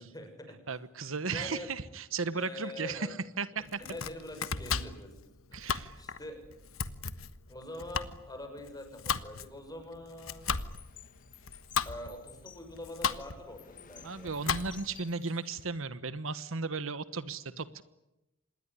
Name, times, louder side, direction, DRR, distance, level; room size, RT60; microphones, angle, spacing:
voice 1, 0.0-0.7 1.3-1.7 2.3-3.1 3.8-5.1 5.5-6.4 7.5-10.5 11.8-14.3, left 1 dB, 20° left, 6 dB, 6.6 m, -44 dB
voice 2, 0.7-3.1 3.4-3.8 5.5-5.9 14.0-17.8, right 4 dB, 70° right, 14 dB, 1.2 m, -35 dB
Domestic sounds home sounds, 3.6-15.0, left 6 dB, 80° left, 1.4 m, -36 dB
sound 1, 10.2-15.7, left 9 dB, 40° left, 1.4 m, -55 dB
27.0 x 20.5 x 9.8 m, 0.94 s
head